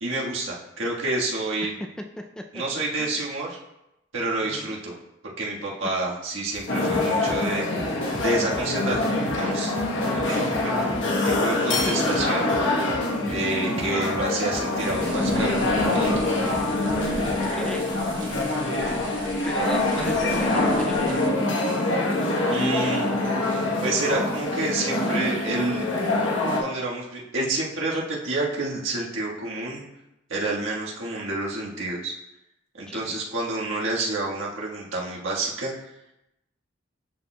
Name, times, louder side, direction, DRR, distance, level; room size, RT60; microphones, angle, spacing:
voice 1, 0.0-1.7 2.5-3.6 4.1-4.9 5.4-7.7 8.2-9.7 10.2-11.0 11.2-12.5 13.3-16.3 22.5-23.1 23.8-25.9 26.5-29.8 30.3-32.1 32.8-35.7, right 2 dB, 85° right, -4 dB, 1.5 m, -29 dB
voice 2, 2.2-2.6 3.0-3.1 4.4-4.7 5.8-6.0 11.8-11.9 13.1-13.4 17.4-17.9 19.4-21.2 32.9-33.2, equal, 5° left, 3 dB, 0.3 m, -36 dB
sound 1, 6.5-17.5, left 2 dB, 40° left, 2.1 m, -39 dB
sound 2, 6.7-26.6, left 2 dB, 75° left, 1.1 m, -25 dB
sound 3, 14.8-21.3, right 3 dB, 70° right, 1.1 m, -42 dB
11.5 x 4.4 x 2.2 m, 0.89 s
head